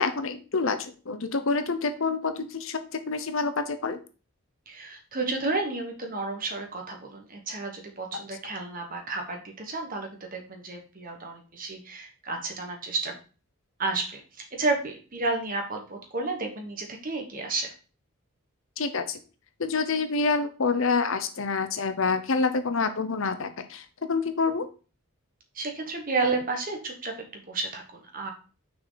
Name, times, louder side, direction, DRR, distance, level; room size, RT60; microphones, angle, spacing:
voice 1, 0.0-4.0 18.8-19.2 19.6-24.7, left 4 dB, 60° left, 9 dB, 0.7 m, -27 dB
voice 2, 4.7-13.1 13.8-17.7 25.5-28.3, right 3 dB, 40° right, 3 dB, 1.3 m, -31 dB
6.1 x 4.7 x 4.0 m, 0.35 s
head